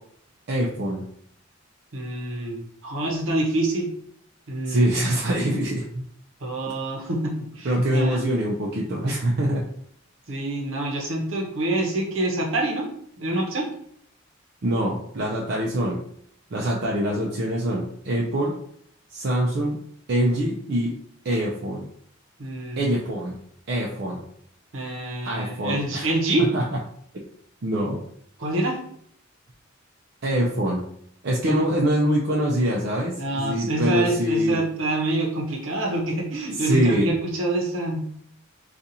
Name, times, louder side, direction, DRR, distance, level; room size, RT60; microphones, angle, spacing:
voice 1, 0.5-1.0 4.7-6.0 7.6-9.6 14.6-16.0 16.5-18.5 19.1-19.8 20.1-20.9 21.2-21.9 22.8-23.3 23.7-24.2 25.2-26.1 26.4-26.8 27.6-28.0 30.2-30.8 31.2-34.6 36.6-37.1, equal, 55° right, -3 dB, 0.5 m, -24 dB
voice 2, 1.9-3.9 4.5-4.9 6.4-8.3 10.3-12.9 13.2-13.7 22.4-23.0 24.7-26.5 28.4-28.8 31.5-31.6 33.2-38.0, right 2 dB, 70° right, 0 dB, 0.9 m, -26 dB
3.9 x 2.4 x 2.8 m, 0.65 s
head